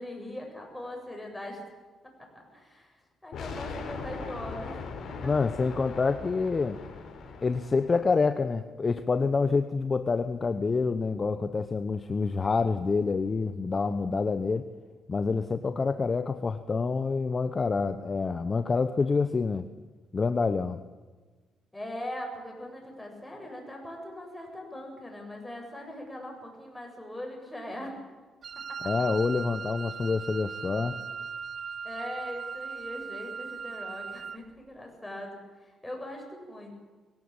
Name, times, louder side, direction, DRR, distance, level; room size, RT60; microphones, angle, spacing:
voice 1, 0.0-1.6 2.2-2.9 3.2-5.3 21.7-28.0 28.7-28.8 31.8-36.7, left 1 dB, 10° left, 1 dB, 7.5 m, -41 dB
sound 1, 3.3-8.2, left 5 dB, 60° left, 4.5 m, -40 dB
voice 2, 5.2-6.8 7.4-14.7 15.1-19.6 20.1-20.8 28.8-31.0, left 4 dB, 35° left, 10 dB, 1.0 m, -27 dB
Wind instrument woodwind instrument, 28.4-34.5, right 6 dB, 50° right, 0.7 m, -38 dB
22.0 x 17.0 x 9.0 m, 1.3 s
cardioid pair, 90°, 0 cm